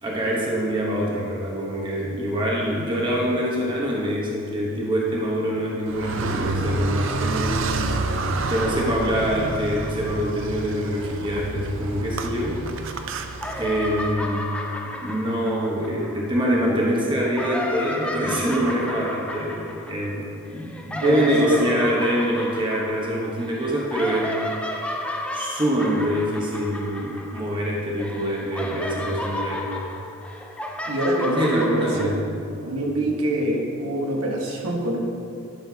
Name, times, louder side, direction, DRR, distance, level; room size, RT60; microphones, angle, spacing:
voice 1, 0.0-7.6 8.5-12.6 13.6-14.5 15.0-24.4 25.3-29.7 31.3-32.2, equal, 20° right, -4 dB, 1.0 m, -25 dB
Car, 5.9-14.1, right 2 dB, 60° right, 0.5 m, -28 dB
sound 1, 12.4-13.0 13.3-16.6 17.1-27.7 28.0-32.1, left 1 dB, 5° left, 0.4 m, -33 dB
voice 2, 21.0-21.6 30.9-32.2 32.6-35.0, right 1 dB, 90° right, -1 dB, 1.3 m, -25 dB
11.0 x 6.6 x 2.8 m, 2.4 s
head